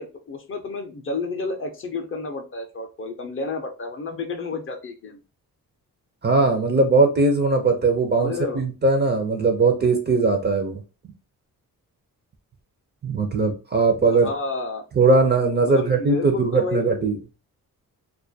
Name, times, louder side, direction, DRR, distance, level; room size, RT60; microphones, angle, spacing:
voice 1, 0.0-5.2 8.2-8.6 14.1-14.8 15.6-17.1, left 3 dB, 40° left, 4 dB, 0.4 m, -31 dB
voice 2, 6.2-10.8 13.0-14.3 15.0-17.2, right 3 dB, 30° right, 4 dB, 0.4 m, -20 dB
2.3 x 2.1 x 2.5 m, 0.32 s
wide cardioid pair, 150°, 35 cm